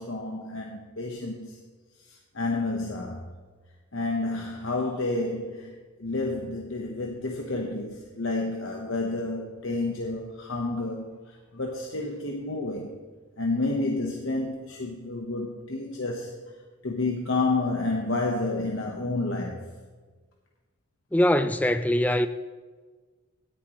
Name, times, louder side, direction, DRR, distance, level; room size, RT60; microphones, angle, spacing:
voice 1, 0.0-1.6 2.0-3.2 3.9-13.0 13.4-16.4 16.8-19.7, left 2 dB, 65° left, 1.0 m, -30 dB
voice 2, 21.1-22.3, left 1 dB, 5° left, 0.4 m, -22 dB
17.0 x 10.0 x 3.1 m
head